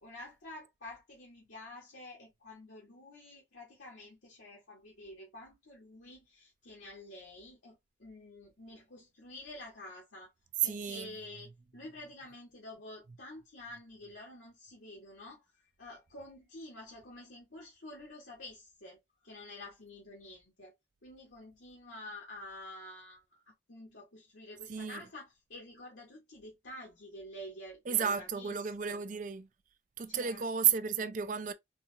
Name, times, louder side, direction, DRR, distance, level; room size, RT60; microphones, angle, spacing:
voice 1, 0.0-10.3 10.6-20.7 21.0-28.6 28.8-29.0 30.1-30.4 31.0-31.1, left 1 dB, 75° left, 1.3 m, -49 dB
voice 2, 10.6-11.1 24.7-25.0 27.9-29.5 30.0-31.5, right 8 dB, 40° right, 0.4 m, -32 dB
4.1 x 2.4 x 2.7 m
head